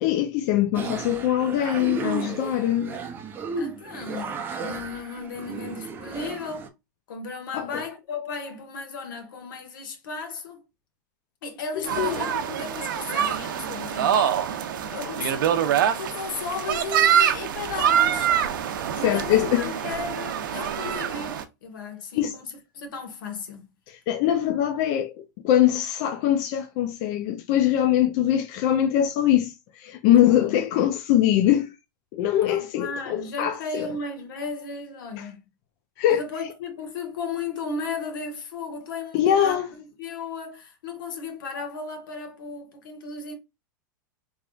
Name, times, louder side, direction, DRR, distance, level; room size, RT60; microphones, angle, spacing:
voice 1, 0.0-2.9 7.5-7.7 12.0-12.2 18.9-19.7 22.1-22.3 23.9-31.7 32.1-33.9 35.2-35.3 36.0-36.2 39.1-39.7, left 11 dB, 45° left, 0.5 m, -22 dB
sound 1, 0.7-6.7, right 4 dB, 20° right, 0.5 m, -34 dB
voice 2, 3.5-6.7 7.1-10.6 11.4-15.7 16.0-18.3 18.9-23.7 30.2-30.6 32.5-35.4 36.1-43.4, left 4 dB, 80° left, 1.6 m, -35 dB
sound 2, 11.9-21.4, right 9 dB, 80° right, 0.6 m, -25 dB
3.5 x 3.4 x 2.4 m
supercardioid pair, 150°, 11 cm